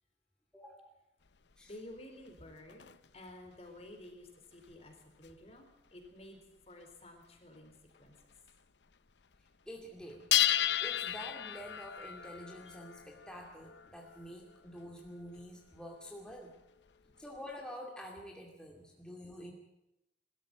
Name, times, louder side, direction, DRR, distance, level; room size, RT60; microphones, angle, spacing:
voice 1, 0.5-1.0 1.6-1.7 9.7-16.5 17.2-19.5, equal, 5° left, -1 dB, 2.4 m, -48 dB
sound 1, 1.3-3.2 3.8-5.4 6.0-6.4 6.8-6.9 7.2-7.3 7.5-8.6 8.9-9.5 9.8-17.7, left 12 dB, 75° left, 0.7 m, -36 dB
voice 2, 1.7-7.7 8.0-8.2, left 1 dB, 35° left, 4 dB, 4.2 m, -52 dB
22.0 x 13.5 x 9.0 m, 0.89 s
head